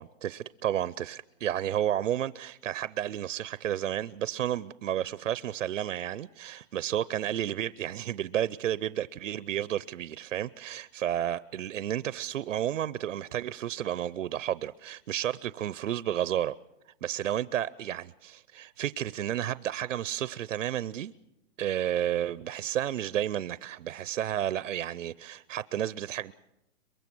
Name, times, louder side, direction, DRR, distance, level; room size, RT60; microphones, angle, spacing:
voice 1, 0.0-16.6 17.0-21.1 21.6-26.3, right 11 dB, 70° right, 0.7 m, -32 dB
23.5 x 22.5 x 6.1 m
hypercardioid pair, 170°, 40 cm